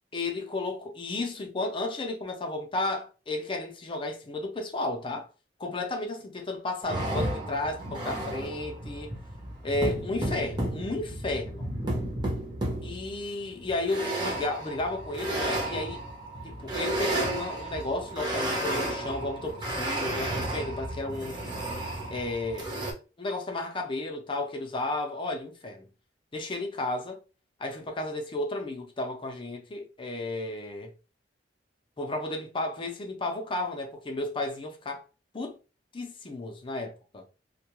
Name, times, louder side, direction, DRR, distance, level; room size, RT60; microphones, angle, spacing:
voice 1, 0.1-5.3 5.6-9.1 9.6-11.7 12.8-16.0 16.4-21.4 22.1-22.7 23.2-25.9 26.3-27.2 27.6-30.9 32.0-35.0 35.3-35.6 35.9-37.2, left 2 dB, 30° left, 0.5 m, -33 dB
sound 1, 6.8-22.9, right 1 dB, 25° right, 0.7 m, -33 dB
2.2 x 2.2 x 2.9 m
head